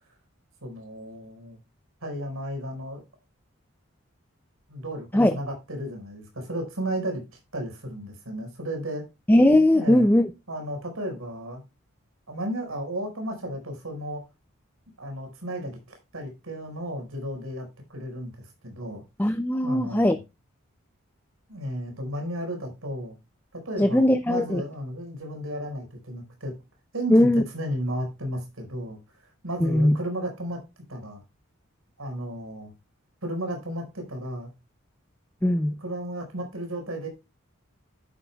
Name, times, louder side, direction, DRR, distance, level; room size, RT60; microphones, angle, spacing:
voice 1, 0.6-1.6 2.0-3.0 4.7-5.1 5.3-7.2 7.5-9.1 9.7-10.1 10.5-11.6 12.3-14.2 15.0-19.3 19.6-20.2 21.5-23.2 23.5-26.5 26.9-29.0 29.4-30.6 30.9-31.2 32.0-32.7 33.2-34.5 35.8-37.1, equal, 90° right, 4.9 m, -33 dB
voice 2, 9.3-10.3 19.2-20.2 23.8-24.6 27.1-27.4 29.6-30.0 35.4-35.7, left 1 dB, 10° left, 0.5 m, -19 dB
11.0 x 10.0 x 2.3 m
head